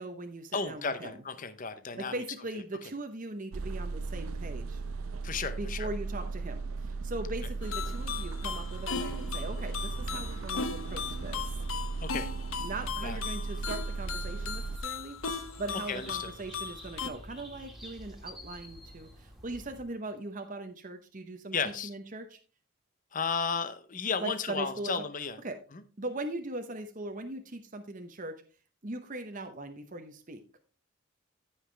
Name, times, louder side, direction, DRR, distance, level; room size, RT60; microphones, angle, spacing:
voice 1, 0.0-1.1 2.0-4.8 5.6-11.6 12.6-22.4 24.2-25.1 25.4-25.6 26.0-28.4 28.8-30.6, right 2 dB, 35° right, 6 dB, 0.8 m, -40 dB
voice 2, 0.5-2.1 5.2-5.9 12.0-12.3 13.0-13.2 15.9-16.3 21.5-21.9 23.1-25.4 25.7-25.8, left 5 dB, 35° left, 11 dB, 0.7 m, -33 dB
sound 1, 3.5-14.8, right 3 dB, 70° right, 0.6 m, -36 dB
sound 2, 7.6-17.1, left 5 dB, 65° left, 0.9 m, -38 dB
sound 3, 13.4-19.8, equal, ahead, 2.0 m, -49 dB
14.5 x 5.7 x 3.3 m, 0.36 s
head